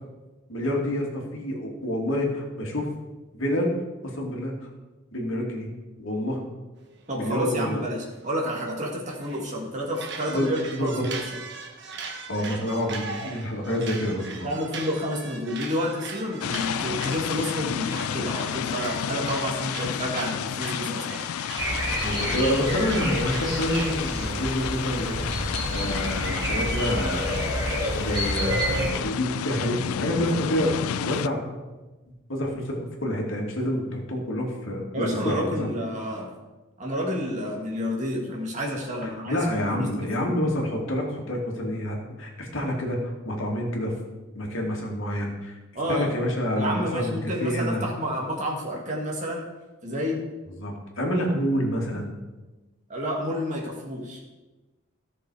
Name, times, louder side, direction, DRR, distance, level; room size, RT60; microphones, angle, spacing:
voice 1, 0.5-2.9 3.3-3.7 4.0-4.5 5.1-5.7 6.0-6.4 7.1-7.8 10.3-11.1 12.3-14.5 22.0-25.2 25.7-27.2 28.0-31.6 32.3-35.7 39.3-43.9 44.3-45.6 45.9-47.8 50.6-52.1, equal, 70° left, -1 dB, 2.4 m, -28 dB
sound 1, 6.9-9.5 9.9-23.9, right 4 dB, 55° right, 1.3 m, -40 dB
voice 2, 7.1-11.2 14.4-21.2 34.9-36.3 36.8-39.4 39.7-40.4 45.8-46.1 46.5-49.5 49.8-50.3 52.9-54.2, equal, 35° right, -2 dB, 2.1 m, -30 dB
sound 2, 16.4-31.3, left 9 dB, 90° left, 0.3 m, -31 dB
sound 3, 21.6-28.9, equal, 20° right, 3.0 m, -29 dB
15.0 x 6.6 x 4.8 m, 1.2 s
head